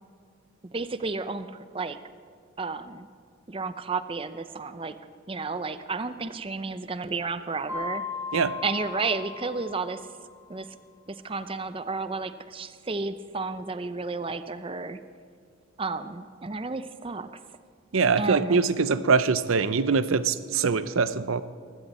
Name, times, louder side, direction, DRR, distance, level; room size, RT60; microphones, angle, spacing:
voice 1, 0.7-2.0 2.6-3.1 3.5-5.0 5.3-8.0 8.6-10.0 10.5-10.7 11.1-15.0 15.8-17.3 18.2-18.6, right 4 dB, 25° right, 11 dB, 0.6 m, -32 dB
Mallet percussion, 7.7-10.3, left 4 dB, 10° right, 3.1 m, -36 dB
voice 2, 17.9-21.4, right 5 dB, 70° right, 14 dB, 0.6 m, -23 dB
19.0 x 16.0 x 4.3 m, 2.2 s
head